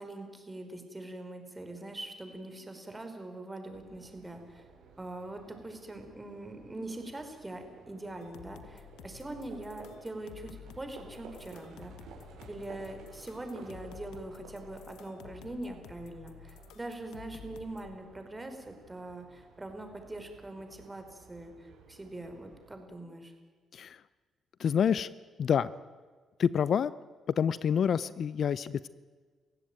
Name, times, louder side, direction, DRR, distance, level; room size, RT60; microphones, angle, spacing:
voice 1, 0.0-4.6 5.0-12.0 12.5-23.3, right 2 dB, 15° right, 6 dB, 4.9 m, -43 dB
Livestock farm animals working animals, 3.7-22.7, right 4 dB, 90° right, 7.1 m, -55 dB
sound 1, 8.2-18.0, left 9 dB, 85° left, 1.6 m, -52 dB
voice 2, 24.6-25.1 25.4-25.7 26.4-26.9 27.4-28.9, left 8 dB, 60° left, 17 dB, 0.6 m, -27 dB
29.5 x 16.0 x 9.2 m, 1.5 s
cardioid pair, 90°, 0 cm